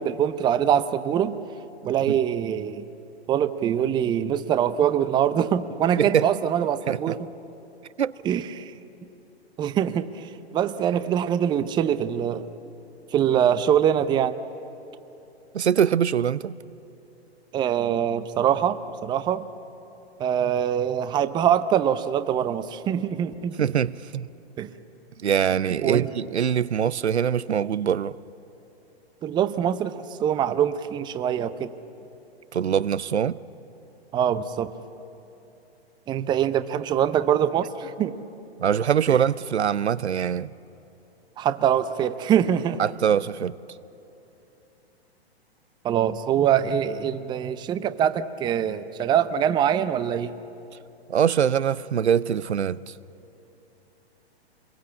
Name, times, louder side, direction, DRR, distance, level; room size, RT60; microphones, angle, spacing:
voice 1, 0.0-1.4 1.8-2.9 3.3-7.3 8.2-8.7 9.6-10.3 10.5-12.5 13.1-14.4 17.5-19.5 20.2-23.6 24.6-24.7 25.8-26.1 29.2-31.8 34.1-34.7 36.1-38.1 39.1-39.2 41.4-42.8 45.8-50.3, right 9 dB, 15° right, 0.6 m, -23 dB
voice 2, 6.0-6.3 6.9-7.2 8.0-8.1 15.5-16.5 23.6-24.3 25.2-28.2 32.5-33.4 38.6-40.5 42.8-43.6 51.1-52.9, right 8 dB, 85° right, 0.6 m, -23 dB
25.5 x 22.0 x 8.5 m
hypercardioid pair, 120°, 32 cm